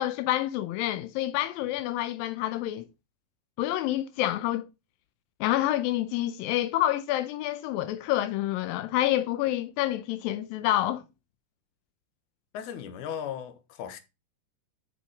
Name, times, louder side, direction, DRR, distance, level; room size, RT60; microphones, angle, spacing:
voice 1, 0.0-2.9 3.6-4.7 5.4-11.0, left 14 dB, 85° left, 2.4 m, -28 dB
voice 2, 12.5-14.0, left 8 dB, 65° left, 2.5 m, -37 dB
7.0 x 6.0 x 4.9 m
omnidirectional pair, 4.0 m